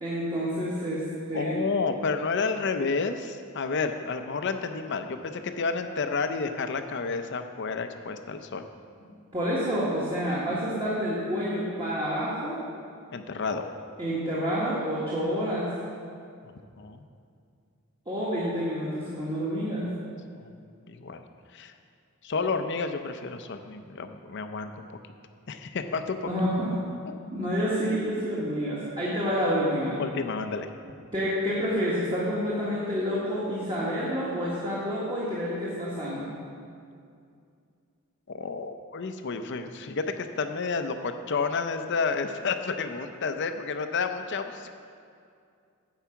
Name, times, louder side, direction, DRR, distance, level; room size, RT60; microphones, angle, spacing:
voice 1, 0.0-1.6 9.0-12.6 14.0-15.7 18.1-19.9 26.3-26.7 27.3-30.0 31.1-36.3, equal, 25° right, -8 dB, 1.6 m, -28 dB
voice 2, 1.3-8.6 13.1-13.7 16.4-17.0 20.4-20.5 20.9-21.2 21.5-21.7 22.2-24.9 25.5-26.2 30.0-30.7 38.3-44.7, left 4 dB, 55° left, 8 dB, 0.6 m, -30 dB
10.0 x 4.8 x 7.0 m, 2.3 s
head